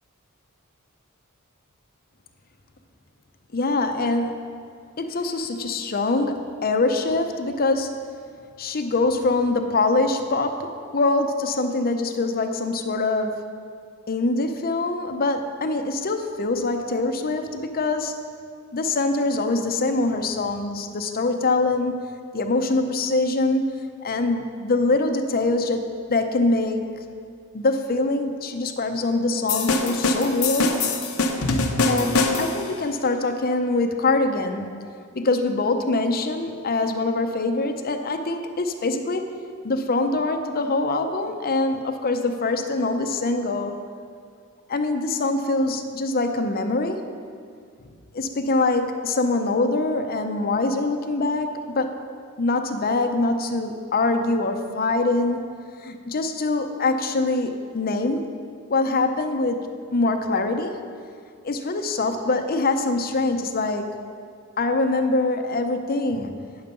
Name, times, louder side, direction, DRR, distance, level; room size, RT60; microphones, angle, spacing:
voice 1, 3.5-4.4 5.0-7.9 8.6-13.4 14.1-18.2 18.7-23.7 24.0-26.9 27.5-30.8 31.8-34.7 35.1-39.3 39.6-43.7 44.7-47.1 48.1-51.9 52.4-58.3 58.7-60.8 61.4-63.9 64.6-66.4, left 2 dB, 45° left, 6 dB, 0.6 m, -24 dB
sound 1, 29.5-32.7, left 3 dB, 80° left, 0.8 m, -23 dB
9.6 x 5.3 x 6.7 m, 2.1 s
head